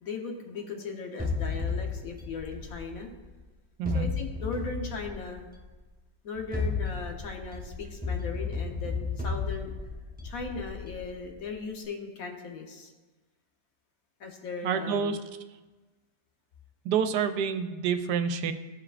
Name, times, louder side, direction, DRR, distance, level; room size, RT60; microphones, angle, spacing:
voice 1, 0.0-3.1 3.9-5.5 6.2-9.7 10.2-12.9 14.2-15.2, left 4 dB, 60° left, 3 dB, 1.3 m, -38 dB
sound 1, 1.2-3.3 3.8-5.7 6.3-11.4, left 4 dB, 10° right, 0.5 m, -34 dB
voice 2, 14.6-15.2 16.8-18.5, right 7 dB, 80° right, 9 dB, 1.2 m, -28 dB
14.0 x 4.9 x 2.4 m, 1.2 s
omnidirectional pair, 1.8 m